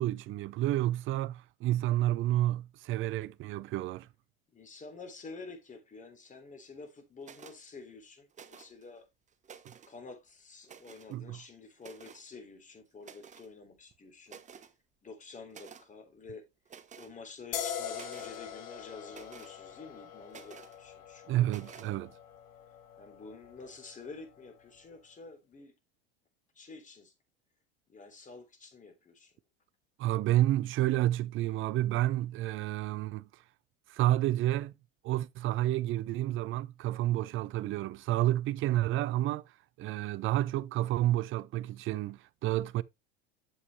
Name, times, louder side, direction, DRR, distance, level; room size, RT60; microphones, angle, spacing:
voice 1, 0.0-4.1 11.1-11.4 21.3-22.1 30.0-33.3 33.9-34.7 35.0-39.4 39.8-42.8, right 14 dB, 40° right, 0.6 m, -30 dB
voice 2, 4.5-9.1 9.9-14.4 15.0-16.5 17.0-21.8 23.0-25.7 26.5-27.1 27.9-29.3, left 4 dB, 25° left, 3.5 m, -49 dB
sound 1, 7.2-7.6 8.3-8.8 9.3-9.9 10.6-11.1 11.8-12.2 13.0-13.5 13.9-14.0 14.3-14.7 15.5-15.9 16.7-17.1 17.5-18.4 19.1-19.5 20.3-20.8 21.5-21.9, right 7 dB, 25° right, 1.0 m, -51 dB
sound 2, 17.5-24.8, left 9 dB, 70° left, 1.7 m, -43 dB
8.4 x 7.2 x 3.2 m
hypercardioid pair, 90°, 30 cm